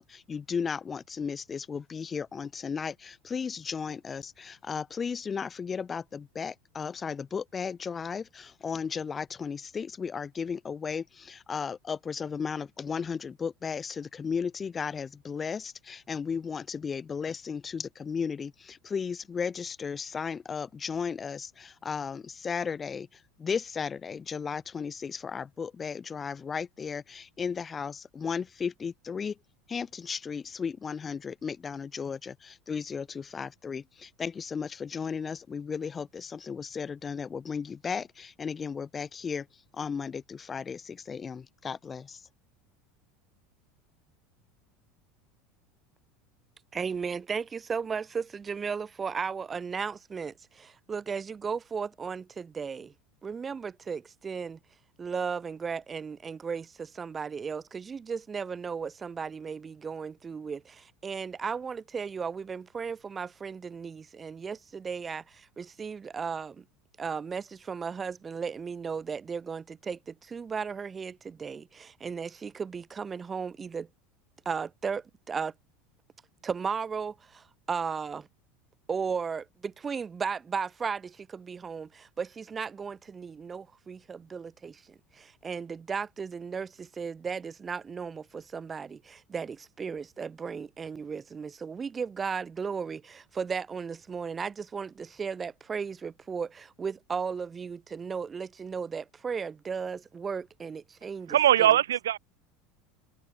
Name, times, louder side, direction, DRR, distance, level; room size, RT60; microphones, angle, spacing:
voice 1, 0.0-29.4 29.7-39.5 39.7-42.2, left 6 dB, 25° left, 0.6 m, -35 dB
voice 2, 46.7-52.9 53.2-54.6 55.0-66.6 67.0-73.9 74.5-75.5 76.4-78.3 78.9-84.8 85.2-101.4, right 6 dB, 25° right, 0.7 m, -35 dB
voice 3, 101.3-102.2, right 11 dB, 80° right, 1.3 m, -21 dB
hypercardioid pair, 85°, 0 cm